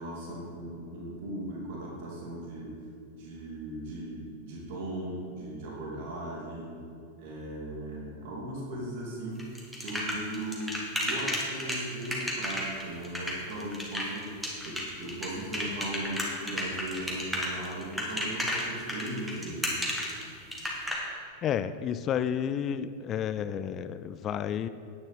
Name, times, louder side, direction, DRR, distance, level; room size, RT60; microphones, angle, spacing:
voice 1, 0.0-2.7 3.1-6.8 7.2-9.5 9.8-14.3 14.6-19.7, right 1 dB, 50° right, -4 dB, 2.7 m, -38 dB
sound 1, 9.4-20.9, equal, 5° right, 2.1 m, -32 dB
voice 2, 21.4-24.7, left 9 dB, 30° left, 13 dB, 0.3 m, -31 dB
10.0 x 9.7 x 4.2 m, 2.5 s
figure-of-eight pair, 90°, 0 cm